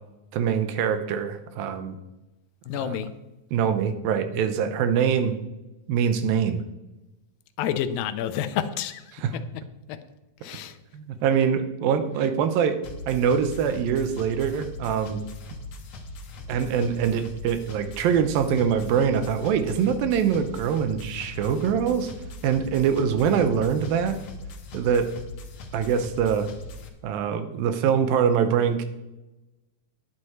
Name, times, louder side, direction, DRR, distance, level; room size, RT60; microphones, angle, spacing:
voice 1, 0.3-2.0 2.8-2.9 3.5-5.3 5.9-6.6 9.2-9.3 10.9-12.8 13.1-15.2 16.5-22.1 22.4-24.2 24.7-25.1 25.7-26.5 27.0-28.8, right 7 dB, 85° right, 10 dB, 2.6 m, -24 dB
voice 2, 2.7-3.1 7.6-9.0 9.3-9.4 9.9-10.0 10.4-10.8, left 9 dB, 85° left, 9 dB, 2.5 m, -29 dB
sound 1, 12.8-26.9, left 2 dB, 60° left, 1.8 m, -40 dB
11.0 x 9.6 x 4.4 m, 0.99 s
omnidirectional pair, 4.1 m